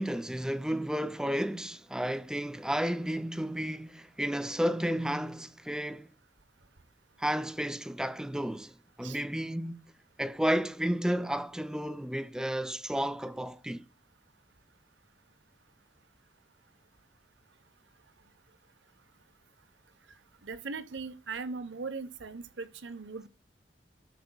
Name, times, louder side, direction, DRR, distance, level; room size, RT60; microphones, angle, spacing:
voice 1, 0.0-6.1 7.2-13.9, equal, 5° right, 0.4 m, -32 dB
voice 2, 20.4-23.3, right 4 dB, 85° right, 0.9 m, -39 dB
13.0 x 7.0 x 2.2 m
head